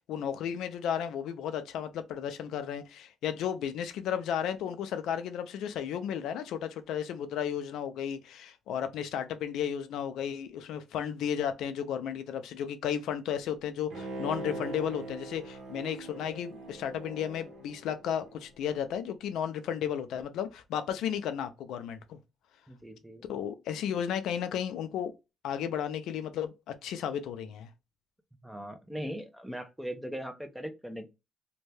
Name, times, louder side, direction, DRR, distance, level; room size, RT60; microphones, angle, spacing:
voice 1, 0.1-22.2 23.3-25.1 25.4-27.7, left 9 dB, 85° left, 0.4 m, -34 dB
Bowed string instrument, 13.9-18.5 18.9-19.0, right 2 dB, 75° right, 0.8 m, -41 dB
voice 2, 22.7-23.2 28.4-31.1, equal, 5° right, 0.6 m, -39 dB
2.6 x 2.2 x 3.2 m
cardioid pair, 90°, 0 cm